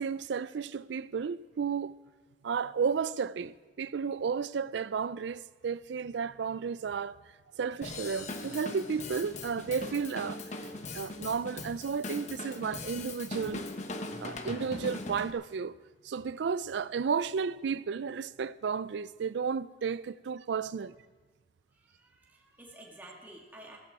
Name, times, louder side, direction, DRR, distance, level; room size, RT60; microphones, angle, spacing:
voice 1, 0.0-2.0 2.4-7.2 7.6-10.4 10.9-13.6 14.2-15.7 16.0-20.9, right 6 dB, 75° right, 0.4 m, -33 dB
Drum kit / Drum, 7.8-15.3, left 2 dB, 40° left, 1.0 m, -40 dB
voice 2, 21.7-23.8, right 1 dB, 10° right, 2.0 m, -51 dB
15.5 x 14.5 x 4.8 m
head